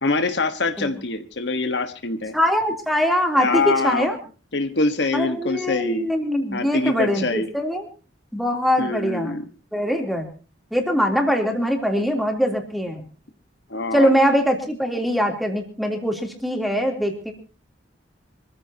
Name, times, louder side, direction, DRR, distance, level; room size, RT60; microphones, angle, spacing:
voice 1, 0.0-2.3 3.4-4.1 4.5-6.1 6.5-7.5 8.8-9.4 13.7-14.1, left 3 dB, 65° left, 8 dB, 1.5 m, -24 dB
voice 2, 2.3-4.2 5.1-7.9 8.3-9.3 9.7-10.3 10.7-13.1 13.9-17.3, equal, ahead, 2 dB, 3.4 m, -22 dB
26.0 x 15.0 x 2.9 m, 0.36 s
head